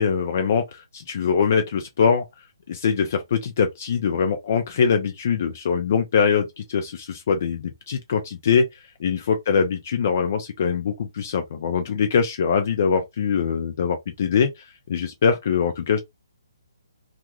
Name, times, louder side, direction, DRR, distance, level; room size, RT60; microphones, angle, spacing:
voice 1, 0.0-2.2 2.7-8.7 9.0-14.5 14.9-16.0, left 6 dB, 35° left, 0.5 m, -22 dB
3.0 x 2.4 x 2.4 m
hypercardioid pair, 175°, 2 cm